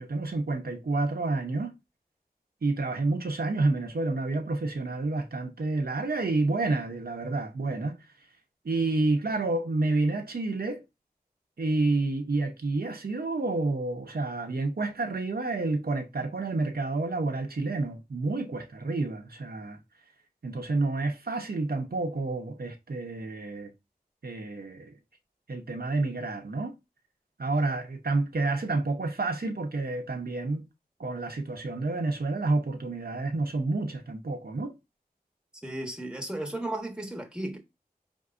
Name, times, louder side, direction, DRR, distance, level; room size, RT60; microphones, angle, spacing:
voice 1, 0.0-1.7 2.6-8.0 8.6-10.8 11.6-19.8 20.4-23.7 24.2-24.9 25.5-26.7 27.4-30.7 31.0-34.7, right 2 dB, 80° right, 0.7 m, -29 dB
voice 2, 35.6-37.6, right 1 dB, 5° right, 1.1 m, -34 dB
4.5 x 3.6 x 2.5 m
wide cardioid pair, 55°, 16 cm